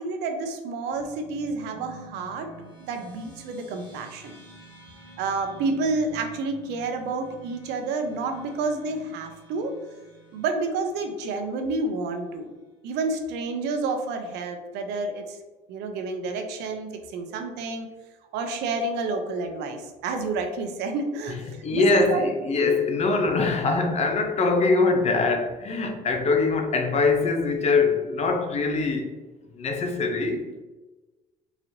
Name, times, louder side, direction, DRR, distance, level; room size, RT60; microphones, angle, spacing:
voice 1, 0.0-2.5 2.8-4.3 5.2-9.7 10.3-12.5 12.8-15.4 15.7-17.9 18.3-22.2, right 3 dB, 90° right, 0.6 m, -29 dB
sound 1, 0.9-11.7, right 1 dB, 65° left, 1.5 m, -48 dB
voice 2, 21.3-29.1 29.5-30.5, left 3 dB, 40° left, 0.6 m, -23 dB
3.9 x 3.1 x 2.7 m
cardioid pair, 110°, 17 cm